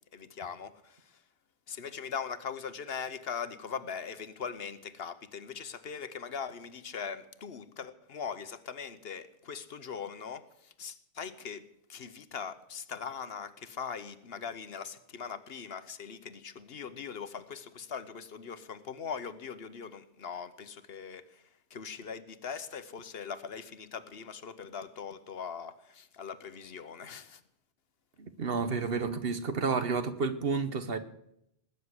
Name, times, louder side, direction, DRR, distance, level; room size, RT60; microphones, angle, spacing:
voice 1, 0.1-1.2 1.7-27.4, left 6 dB, 65° left, 1.2 m, -41 dB
voice 2, 28.2-31.0, right 4 dB, 60° right, 1.3 m, -30 dB
19.5 x 6.7 x 9.6 m
omnidirectional pair, 1.1 m